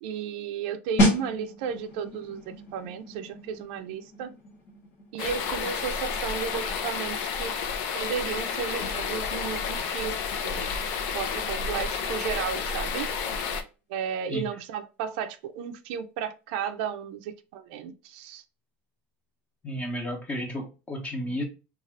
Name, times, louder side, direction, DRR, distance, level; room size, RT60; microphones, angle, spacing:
voice 1, 0.0-4.3 5.1-7.5 7.9-10.2 10.4-10.8 11.1-13.1 13.9-18.4, right 7 dB, 75° right, 0.4 m, -34 dB
sound 1, 1.0-11.5 11.8-12.0, equal, 45° left, 1.2 m, -33 dB
sound 2, 5.2-13.6, left 6 dB, 65° left, 0.5 m, -31 dB
voice 2, 19.6-21.4, equal, 20° left, 0.8 m, -32 dB
2.6 x 2.4 x 3.0 m
supercardioid pair, 135°, 6 cm